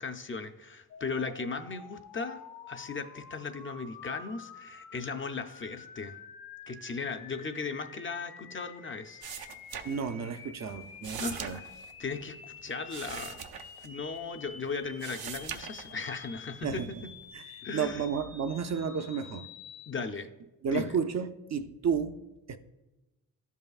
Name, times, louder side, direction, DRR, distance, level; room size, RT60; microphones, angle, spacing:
voice 1, 0.0-6.2 6.7-9.2 11.2-11.7 12.0-13.4 13.8-17.0 17.6-18.1 19.9-20.3 20.7-20.9, left 4 dB, 35° left, 0.5 m, -37 dB
sound 1, 0.9-19.9, left 5 dB, 80° left, 0.8 m, -49 dB
sound 2, 9.2-10.4 10.7-14.5 14.8-16.3 16.7-17.3, right 7 dB, 90° right, 0.6 m, -42 dB
voice 2, 9.8-11.6 16.6-16.9 17.3-19.5 20.6-22.2 22.5-22.6, right 6 dB, 50° right, 0.5 m, -32 dB
12.0 x 5.5 x 2.4 m
cardioid pair, 85°, 36 cm